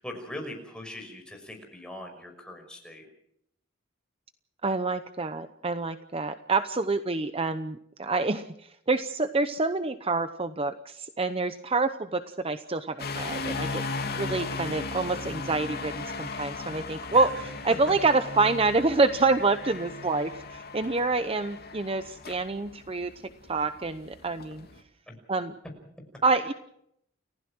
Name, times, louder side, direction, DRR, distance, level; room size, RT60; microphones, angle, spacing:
voice 1, 0.0-3.0 17.1-17.3 25.1-25.2, left 1 dB, 5° left, 2 dB, 5.8 m, -41 dB
voice 2, 4.6-13.8 14.2-23.1 23.5-24.7 25.3-25.5 26.2-26.5, right 3 dB, 30° right, 10 dB, 0.8 m, -27 dB
sound 1, 13.0-24.8, left 3 dB, 50° left, 2.9 m, -37 dB
30.0 x 16.0 x 6.2 m, 0.74 s
head